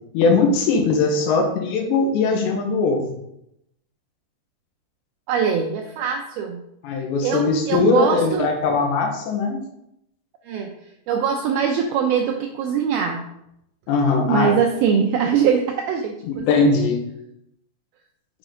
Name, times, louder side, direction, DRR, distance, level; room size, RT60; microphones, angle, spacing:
voice 1, 0.1-3.1 6.8-9.6 13.9-14.5 16.3-17.0, left 4 dB, 80° left, 2 dB, 3.5 m, -20 dB
voice 2, 5.3-6.6 7.2-8.5 10.4-10.7 11.1-13.2 14.3-16.5, right 7 dB, 85° right, 2 dB, 2.2 m, -22 dB
7.8 x 7.2 x 3.8 m, 0.80 s
omnidirectional pair, 5.1 m